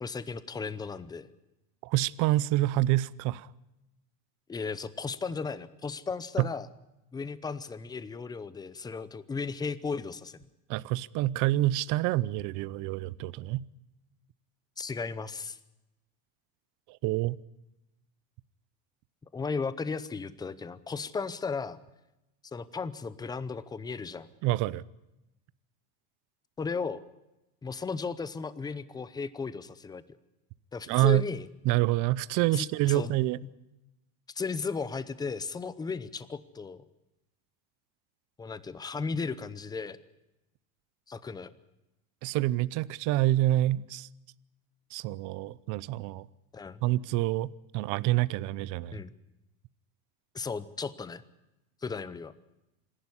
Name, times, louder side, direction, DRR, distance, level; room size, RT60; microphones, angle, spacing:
voice 1, 0.0-1.3 4.5-6.7 7.1-10.5 14.8-15.6 19.3-21.8 22.4-24.3 26.6-27.0 27.6-30.0 30.7-31.5 32.5-33.1 33.4-33.5 34.4-36.8 38.4-40.0 41.1-41.5 46.5-46.8 48.9-49.1 50.3-51.2 51.8-52.3, left 4 dB, 10° left, 15 dB, 0.7 m, -35 dB
voice 2, 1.8-3.5 6.4-6.5 10.7-13.6 16.9-17.4 24.4-24.8 30.9-31.2 31.7-33.4 42.2-44.1 44.9-46.3 46.8-49.0, right 16 dB, 45° right, 19 dB, 0.7 m, -27 dB
26.5 x 11.5 x 9.8 m, 0.95 s
cardioid pair, 150°, 42 cm